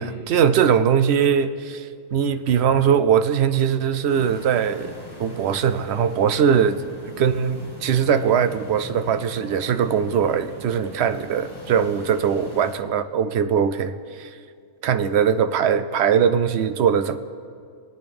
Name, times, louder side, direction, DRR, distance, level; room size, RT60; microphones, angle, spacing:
voice 1, 0.0-6.8 7.2-14.3 14.8-17.2, right 7 dB, 65° right, 0.8 m, -21 dB
sound 1, 4.1-12.7, left 1 dB, 15° left, 1.7 m, -42 dB
26.0 x 8.9 x 3.5 m
omnidirectional pair, 1.4 m